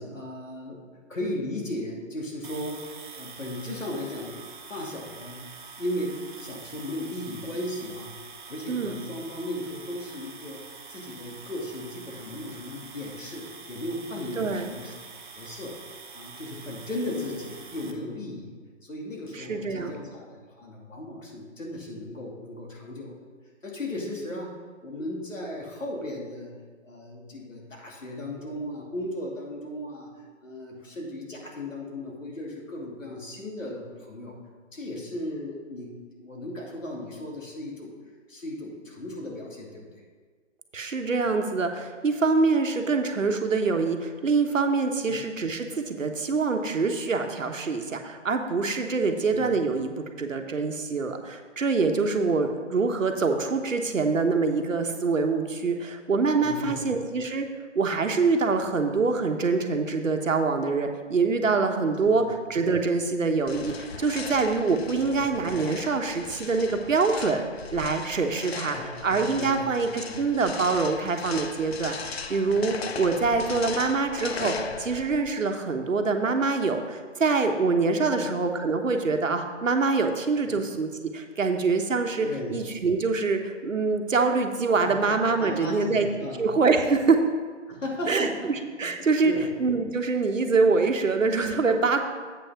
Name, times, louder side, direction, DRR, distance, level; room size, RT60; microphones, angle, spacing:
voice 1, 0.0-2.8 3.1-4.4 4.7-5.5 5.8-8.1 8.5-10.6 10.9-14.9 15.3-15.7 16.1-18.5 18.8-23.1 23.6-24.5 24.8-26.5 26.8-30.1 30.4-34.3 34.7-37.9 38.3-39.9 45.1-45.2 49.3-49.5 56.4-56.9 62.0-62.3 65.0-65.3 68.7-69.7 70.0-70.3 73.1-73.4 78.1-78.2 80.4-80.6 82.2-82.6 84.8-85.1 85.4-86.4 87.7-88.5 89.0-89.4, left 1 dB, 90° left, -2 dB, 2.7 m, -36 dB
sound 1, 2.4-17.9, right 5 dB, 40° right, 0.7 m, -45 dB
voice 2, 14.4-14.7 19.3-20.0 40.7-57.5 57.7-67.4 67.7-86.1 86.4-87.2 88.1-89.3 89.6-92.0, right 4 dB, 90° right, 5 dB, 1.1 m, -25 dB
sound 2, 63.5-75.4, left 5 dB, 55° left, 0.6 m, -38 dB
8.1 x 5.8 x 5.7 m, 1.5 s
hypercardioid pair, 160°, 38 cm